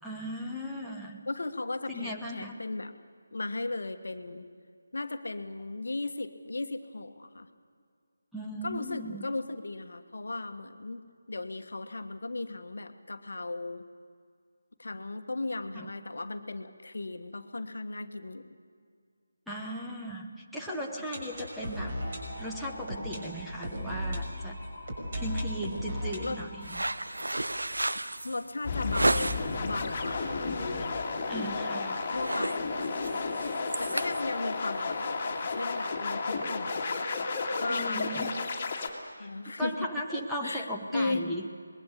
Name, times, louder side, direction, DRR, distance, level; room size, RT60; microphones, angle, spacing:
voice 1, 0.0-1.3 1.9-2.5 8.3-9.3 15.7-15.9 19.5-22.0 22.4-24.6 25.1-26.8 31.3-32.0 37.7-38.3 39.2-39.3 39.6-41.5, equal, ahead, -4 dB, 1.1 m, -37 dB
voice 2, 1.3-2.9 3.3-4.5 4.9-7.5 8.6-11.0 11.3-13.8 14.8-18.5 26.2-26.4 28.2-30.6 32.1-32.9 33.3-33.4 33.8-37.1 37.5-38.3 39.2-39.7 40.1-41.3, left 2 dB, 55° left, 8 dB, 1.3 m, -36 dB
sound 1, 20.6-28.4 28.7-28.8 29.0-29.1 29.6-29.7, equal, 35° right, 5.9 m, -38 dB
sound 2, 26.6-29.6 30.1-30.4 30.8-31.0 31.3-31.7 32.0-35.9, right 1 dB, 65° right, 1.0 m, -32 dB
sound 3, 28.6-38.9, left 4 dB, 25° left, 2.3 m, -32 dB
25.5 x 21.0 x 6.9 m, 2.1 s
figure-of-eight pair, 155°, 0 cm